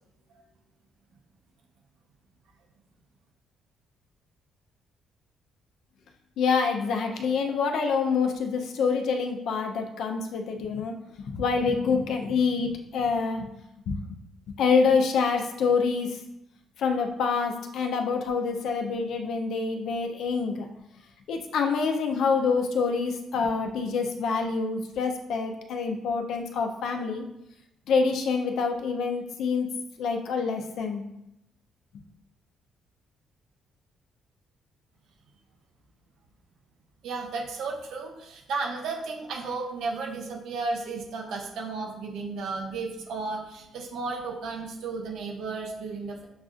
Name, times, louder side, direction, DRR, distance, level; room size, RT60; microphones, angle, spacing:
voice 1, 6.4-13.5 13.9-14.2 14.6-16.2 16.8-20.6 21.3-27.2 27.9-29.7 30.0-31.0, left 5 dB, 75° left, 3 dB, 0.6 m, -26 dB
voice 2, 37.0-46.3, right 4 dB, 80° right, 0 dB, 0.9 m, -33 dB
7.0 x 2.5 x 2.5 m, 0.85 s
cardioid pair, 90°, 0 cm